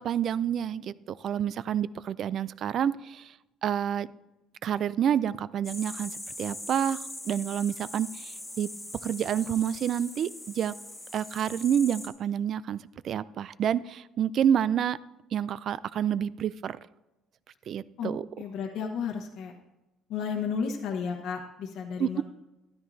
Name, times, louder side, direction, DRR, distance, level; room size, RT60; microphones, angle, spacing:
voice 1, 0.0-3.3 3.6-4.1 4.6-6.1 6.4-7.0 7.3-8.7 9.0-10.7 11.1-15.0 15.3-16.8 17.7-18.3 22.0-22.2, right 9 dB, 40° right, 18 dB, 0.3 m, -28 dB
sound 1, 5.6-12.1, left 1 dB, 5° left, 2.0 m, -41 dB
voice 2, 18.4-19.5 20.1-22.2, left 6 dB, 60° left, 0 dB, 1.1 m, -32 dB
13.0 x 12.5 x 2.7 m, 0.99 s
cardioid pair, 165°, 0 cm